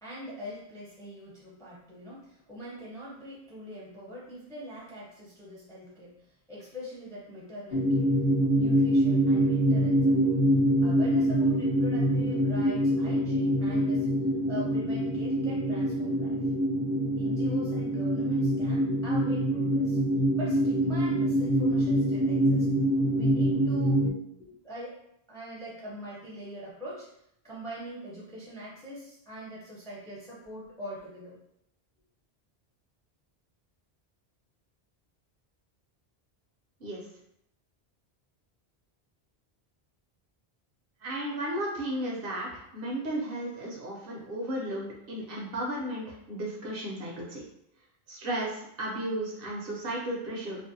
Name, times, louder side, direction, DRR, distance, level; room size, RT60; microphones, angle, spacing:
voice 1, 0.0-6.1 6.5-8.1 8.5-10.4 10.8-14.1 14.5-16.4 17.2-20.0 20.3-22.7 23.1-24.0 24.4-25.0 25.3-27.1 27.4-31.4, equal, 5° left, -6 dB, 0.5 m, -42 dB
sound 1, 7.7-24.1, equal, 55° left, 0.6 m, -25 dB
voice 2, 41.0-47.4 48.1-50.6, right 1 dB, 65° right, -3 dB, 0.8 m, -34 dB
2.5 x 2.1 x 2.6 m, 0.75 s
omnidirectional pair, 1.1 m